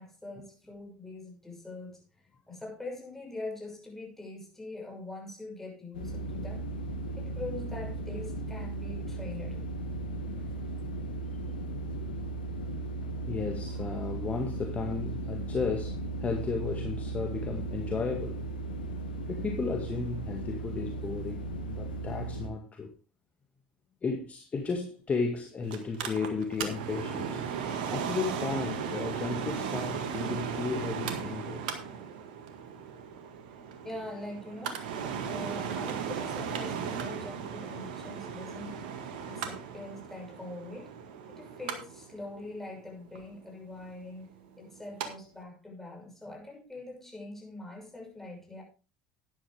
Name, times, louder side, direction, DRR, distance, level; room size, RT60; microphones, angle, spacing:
voice 1, 0.0-2.0 2.5-6.7 7.2-9.6 33.8-34.9 35.2-41.0 41.3-48.6, left 2 dB, 5° left, 6.2 m, -43 dB
sound 1, 5.9-22.5, right 2 dB, 85° left, 1.4 m, -36 dB
voice 2, 10.1-10.5 13.3-18.4 19.3-22.9 24.0-27.5 27.9-31.7, left 4 dB, 30° left, 2.0 m, -34 dB
Mechanical fan, 25.7-45.1 45.4-45.5, right 7 dB, 75° right, 1.8 m, -36 dB
12.0 x 10.5 x 3.5 m
hypercardioid pair, 70°, 5 cm